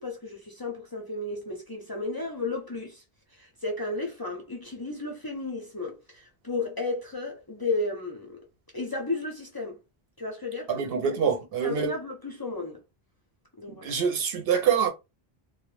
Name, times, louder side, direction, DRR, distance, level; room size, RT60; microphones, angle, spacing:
voice 1, 0.0-3.0 3.3-8.4 8.7-9.8 10.2-10.7 11.6-12.8 13.6-13.9, left 3 dB, 35° left, 0.4 m, -33 dB
voice 2, 10.7-12.0 13.8-14.9, right 7 dB, 70° right, 0.8 m, -25 dB
2.2 x 2.0 x 3.0 m
omnidirectional pair, 1.1 m